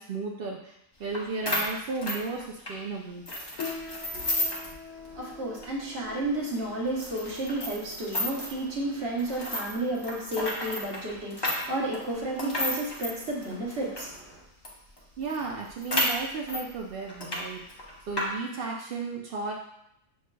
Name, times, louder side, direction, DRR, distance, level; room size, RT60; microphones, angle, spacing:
voice 1, 0.0-3.2 15.2-19.5, right 4 dB, 70° right, 0 dB, 0.5 m, -34 dB
sound 1, 1.1-1.2 1.5-2.8 3.3-4.7 5.1-5.2 5.5-5.7 6.2-6.3 7.0-8.6 9.2-14.1 14.6-14.7 15.0-15.1 15.3-16.6 17.1-17.4 17.7-18.3, left 1 dB, 25° left, 0.5 m, -31 dB
Piano, 3.5-13.5, left 5 dB, 75° left, 1.0 m, -45 dB
voice 2, 5.0-14.4, right 1 dB, 50° right, -3 dB, 1.2 m, -32 dB
6.3 x 3.2 x 2.2 m, 0.80 s
omnidirectional pair, 1.5 m